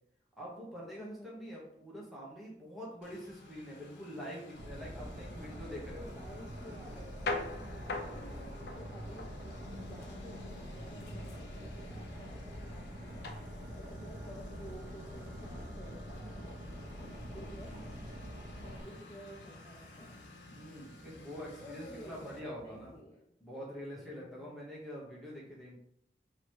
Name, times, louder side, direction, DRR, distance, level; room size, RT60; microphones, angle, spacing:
voice 1, 0.4-6.1 18.6-19.0 20.5-23.0 23.4-25.8, equal, ahead, -5 dB, 1.1 m, -45 dB
voice 2, 1.0-1.5 5.4-16.6 17.3-17.9 18.6-20.3 21.6-23.3 24.0-24.5, equal, 15° left, -3 dB, 0.5 m, -53 dB
Engine, 3.0-22.4, left 2 dB, 90° left, 0.8 m, -54 dB
Boat Water vehicle, 4.5-18.8, equal, 65° right, 0.8 m, -45 dB
sound 1, 6.9-23.0, left 2 dB, 65° left, 0.5 m, -47 dB
3.1 x 3.1 x 4.4 m, 0.73 s
head